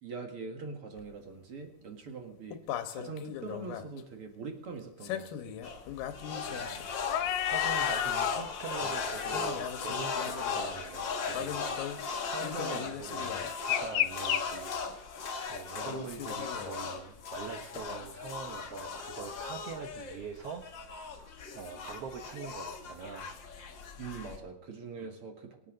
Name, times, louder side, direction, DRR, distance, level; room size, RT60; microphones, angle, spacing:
voice 1, 0.0-2.6 2.9-5.6 15.9-16.1 24.0-25.6, right 4 dB, 45° right, 3 dB, 2.3 m, -43 dB
sound 1, 1.0-1.1 2.5-3.8 5.0-8.4 8.8-9.0 9.3-10.8 11.3-12.0 12.4-14.4 15.8-17.0 17.8-17.9, left 11 dB, 85° left, 2.6 m, -35 dB
sound 2, 5.6-24.4, left 5 dB, 50° left, 1.5 m, -37 dB
voice 2, 6.4-14.8 15.0-23.4 25.0-25.1, right 6 dB, 65° right, 5 dB, 1.5 m, -44 dB
25.0 x 8.5 x 3.9 m, 0.80 s
omnidirectional pair, 3.9 m